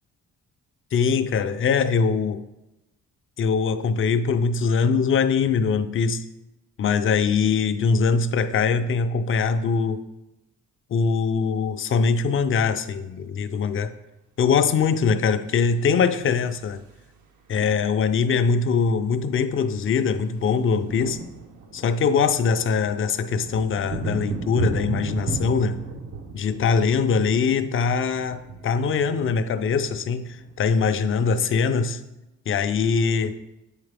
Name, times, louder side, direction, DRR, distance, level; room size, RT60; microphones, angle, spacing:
voice 1, 0.9-2.4 3.4-6.3 6.8-10.0 10.9-13.9 14.4-16.8 17.5-21.2 21.7-25.8 26.3-32.0 32.5-33.4, left 5 dB, 45° left, 0.5 m, -22 dB
sound 1, 15.7-17.2 18.5-18.6 18.8-19.1 19.3-31.4, right 4 dB, 75° right, 0.9 m, -35 dB
7.8 x 4.9 x 3.4 m
cardioid pair, 90°, 30 cm